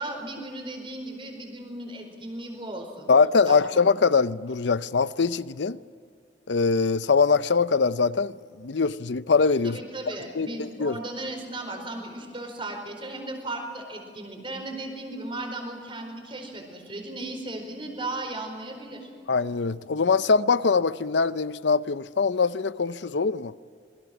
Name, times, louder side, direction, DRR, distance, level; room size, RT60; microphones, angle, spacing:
voice 1, 0.0-3.1 3.4-3.6 9.6-19.1, right 2 dB, 30° right, 4.7 m, -36 dB
voice 2, 3.1-5.8 6.5-9.8 10.3-11.0 19.3-23.5, left 4 dB, 85° left, 0.6 m, -23 dB
27.0 x 22.0 x 6.1 m
head